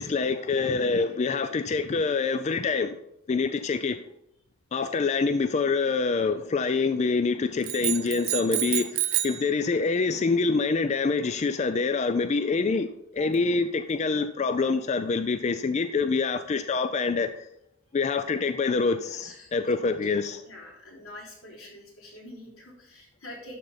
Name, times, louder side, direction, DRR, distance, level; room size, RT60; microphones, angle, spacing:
voice 1, 0.0-2.9 3.3-4.0 4.7-12.9 13.1-17.5 17.9-20.4, left 4 dB, 35° left, 10 dB, 0.3 m, -26 dB
sound 1, 7.6-9.5, right 14 dB, 85° right, 0.9 m, -28 dB
voice 2, 19.0-19.5 20.2-23.6, left 1 dB, 85° left, -3 dB, 3.5 m, -45 dB
11.5 x 4.0 x 5.6 m, 0.79 s
head